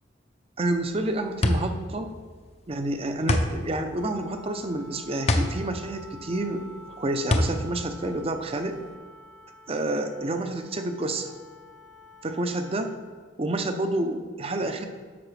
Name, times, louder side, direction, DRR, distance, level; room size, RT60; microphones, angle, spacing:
sound 1, 0.6-8.9, left 1 dB, 35° left, 0.6 m, -27 dB
voice 1, 0.6-2.1 2.7-6.7 7.0-8.8 9.7-11.3 12.2-12.9 13.4-14.9, right 2 dB, 30° right, 7 dB, 0.6 m, -29 dB
Wind instrument woodwind instrument, 3.9-13.1, left 1 dB, 70° left, 1.0 m, -49 dB
11.0 x 6.8 x 3.3 m, 1.5 s
head